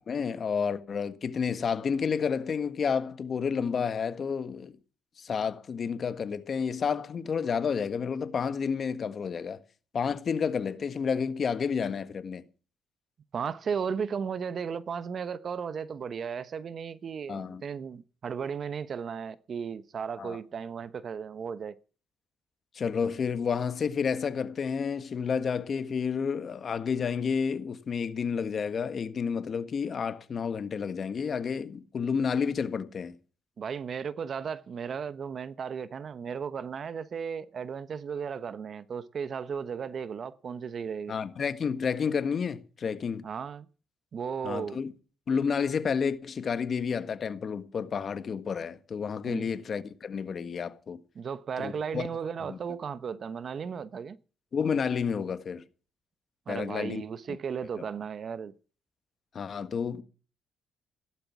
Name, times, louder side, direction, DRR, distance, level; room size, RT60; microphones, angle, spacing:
voice 1, 0.1-4.7 5.2-9.6 9.9-12.4 17.3-17.6 20.2-20.4 22.7-33.2 41.1-43.2 44.4-44.9 45.3-51.0 51.6-52.1 52.4-52.6 54.5-55.6 56.5-57.0 59.3-60.0, left 6 dB, 50° left, 1.6 m, -30 dB
voice 2, 13.3-21.8 33.6-41.1 43.2-43.7 44.1-44.8 49.3-49.5 51.1-54.2 56.5-58.5, right 6 dB, 50° right, 1.0 m, -35 dB
16.0 x 12.0 x 6.1 m
cardioid pair, 90°, 0 cm